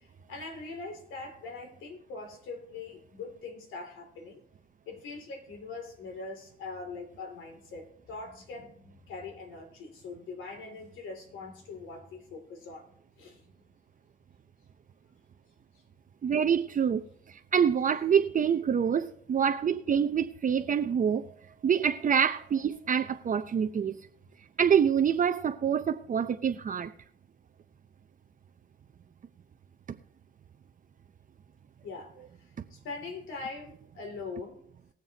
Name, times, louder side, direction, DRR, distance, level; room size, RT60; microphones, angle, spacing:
voice 1, 0.0-4.4 4.9-12.9 13.2-13.5 31.8-32.1 32.4-34.6, left 3 dB, 85° left, 2.7 m, -42 dB
voice 2, 16.2-17.0 17.3-21.3 21.6-24.0 24.6-26.9, right 7 dB, 40° right, 0.7 m, -26 dB
20.5 x 7.4 x 2.8 m
cardioid pair, 90°, 20 cm